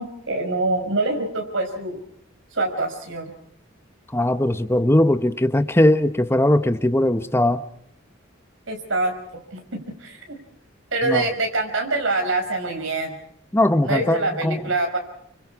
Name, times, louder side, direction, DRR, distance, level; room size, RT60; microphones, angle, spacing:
voice 1, 0.0-2.0 2.5-3.3 8.7-9.1 9.5-10.4 10.9-13.2 13.8-15.0, right 2 dB, 70° right, 3 dB, 5.3 m, -25 dB
voice 2, 4.1-7.6 11.0-11.3 13.5-14.6, left 1 dB, 15° left, 10 dB, 1.0 m, -19 dB
29.5 x 25.0 x 4.7 m, 0.69 s
head